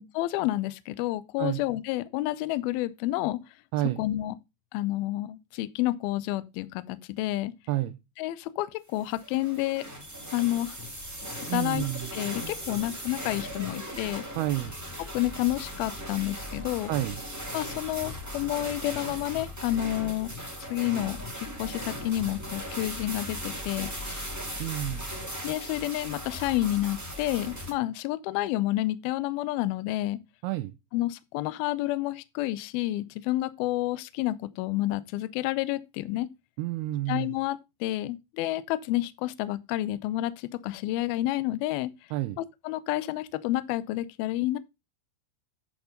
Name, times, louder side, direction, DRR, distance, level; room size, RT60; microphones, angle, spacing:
voice 1, 0.0-3.4 4.0-4.4 4.7-7.5 8.2-9.9 10.3-10.8 11.4-11.9 12.1-14.2 15.1-16.9 17.5-20.3 20.7-24.3 25.4-30.2 30.9-36.3 37.1-41.9 42.4-44.6, left 16 dB, 85° left, 2.1 m, -30 dB
sound 1, 9.0-27.7, equal, 10° right, 0.7 m, -38 dB
voice 2, 11.5-12.1 14.4-14.8 16.9-17.2 24.6-25.1 30.4-30.7 36.6-37.4 42.1-42.4, right 16 dB, 85° right, 2.3 m, -30 dB
10.5 x 4.8 x 5.1 m
omnidirectional pair, 5.1 m